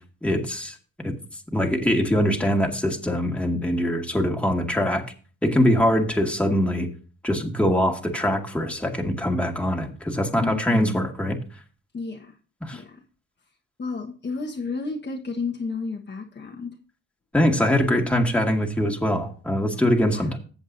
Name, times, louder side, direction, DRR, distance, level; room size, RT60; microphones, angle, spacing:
voice 1, 0.2-0.8 1.0-1.1 1.5-5.0 5.4-6.9 7.2-11.4 12.6-12.8 17.3-20.4, equal, 5° left, 1 dB, 2.1 m, -23 dB
voice 2, 10.4-11.1 11.9-12.3 12.7-13.0 13.8-16.7 20.1-20.3, left 4 dB, 35° left, 0 dB, 1.4 m, -31 dB
14.0 x 7.9 x 2.7 m, 0.38 s
cardioid pair, 90°, 30 cm